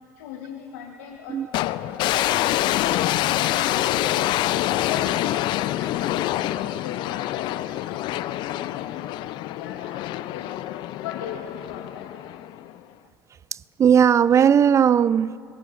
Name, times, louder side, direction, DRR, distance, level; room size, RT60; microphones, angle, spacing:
voice 1, 0.2-1.4 1.9-4.3 4.7-10.5 11.0-12.0, left 8 dB, 80° left, 1.1 m, -38 dB
sound 1, 1.5-12.8, left 14 dB, 60° left, 0.4 m, -26 dB
voice 2, 13.5-15.4, right 8 dB, 35° right, 0.4 m, -18 dB
28.0 x 16.5 x 2.5 m
hypercardioid pair, 70°, 9 cm